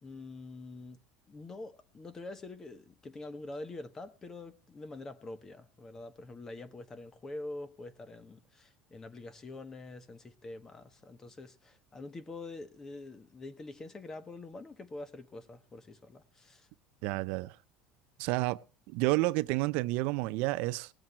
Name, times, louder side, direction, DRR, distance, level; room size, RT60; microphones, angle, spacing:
voice 1, 0.0-1.0 1.3-16.7, left 2 dB, 20° left, 1.3 m, -45 dB
voice 2, 17.0-17.6 18.2-20.9, right 20 dB, 70° right, 0.6 m, -30 dB
19.0 x 7.6 x 4.4 m
cardioid pair, 135°, 2 cm